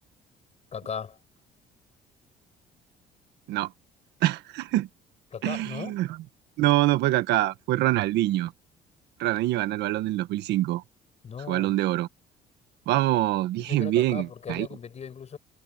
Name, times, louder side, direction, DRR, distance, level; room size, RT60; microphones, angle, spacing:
voice 1, 0.7-1.2 5.3-6.0 11.2-11.8 13.6-15.4, left 7 dB, 40° left, 7.7 m, -37 dB
voice 2, 4.2-4.9 5.4-6.1 6.6-8.5 9.2-10.8 11.5-12.1 12.9-14.7, right 15 dB, 85° right, 1.5 m, -25 dB
cardioid pair, 110°, 17 cm